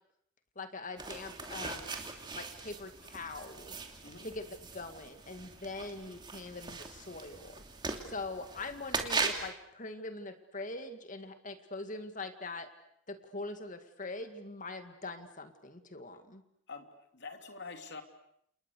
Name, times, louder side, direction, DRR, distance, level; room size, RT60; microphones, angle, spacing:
voice 1, 0.6-3.8 4.2-7.6 8.1-12.7 13.1-16.4, left 3 dB, 40° left, 8 dB, 2.1 m, -43 dB
sound 1, 1.0-9.5, right 4 dB, 20° right, 2.8 m, -40 dB
voice 2, 16.7-18.0, left 4 dB, 55° left, 6 dB, 3.1 m, -46 dB
30.0 x 28.5 x 6.7 m, 0.72 s
head